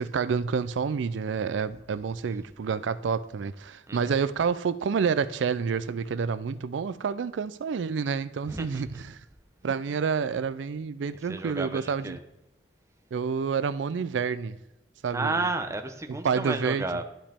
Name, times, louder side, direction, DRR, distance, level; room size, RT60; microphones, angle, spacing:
voice 1, 0.0-9.2 9.6-12.2 13.1-14.6 15.0-15.5 16.2-16.8, right 6 dB, 90° right, 0.4 m, -28 dB
voice 2, 8.4-9.0 11.3-12.2 15.1-17.0, right 3 dB, 15° right, 0.7 m, -32 dB
11.0 x 5.1 x 3.4 m
head